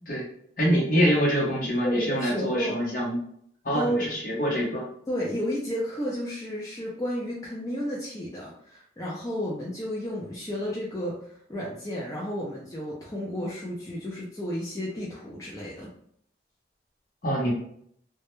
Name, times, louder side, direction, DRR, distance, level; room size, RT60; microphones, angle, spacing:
voice 1, 0.6-3.2 3.6-4.9 17.2-17.5, equal, 50° left, -3 dB, 0.7 m, -25 dB
voice 2, 1.8-2.8 3.7-4.1 5.1-11.2 11.5-15.9, equal, 20° left, -5 dB, 0.4 m, -32 dB
2.2 x 2.0 x 2.9 m, 0.66 s
head